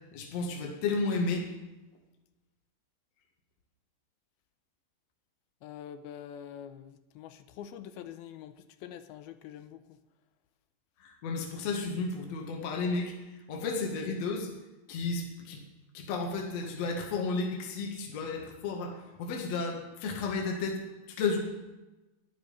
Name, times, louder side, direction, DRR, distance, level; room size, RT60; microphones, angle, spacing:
voice 1, 0.1-1.5 11.0-14.5 14.9-15.6 15.9-20.8 21.1-21.4, left 4 dB, 50° left, 1 dB, 2.5 m, -33 dB
voice 2, 5.6-10.0, left 9 dB, 80° left, 10 dB, 2.5 m, -45 dB
13.0 x 11.0 x 5.6 m, 1.1 s
omnidirectional pair, 4.5 m